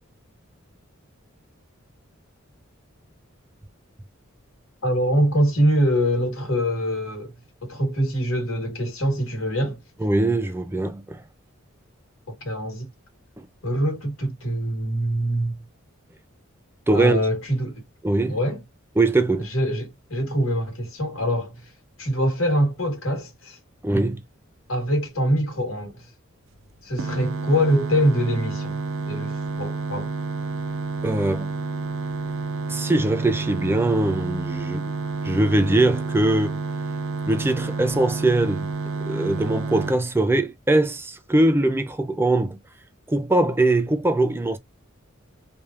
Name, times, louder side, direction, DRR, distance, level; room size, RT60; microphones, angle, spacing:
voice 1, 4.8-7.3 7.6-9.8 12.3-12.9 13.6-15.6 16.9-17.8 18.3-18.6 19.4-21.7 22.0-23.6 24.7-26.1 26.8-28.8 29.1-30.1, equal, 75° left, 1.4 m, -24 dB
voice 2, 10.0-11.2 13.4-13.5 16.9-17.3 18.0-18.4 19.0-19.5 23.8-24.2 31.0-31.6 32.7-34.9 35.2-36.6 37.3-38.7 39.1-42.6 43.1-44.6, right 2 dB, 10° right, 0.4 m, -22 dB
sound 1, 27.0-39.9, right 3 dB, 75° right, 0.5 m, -29 dB
3.1 x 2.3 x 2.4 m
head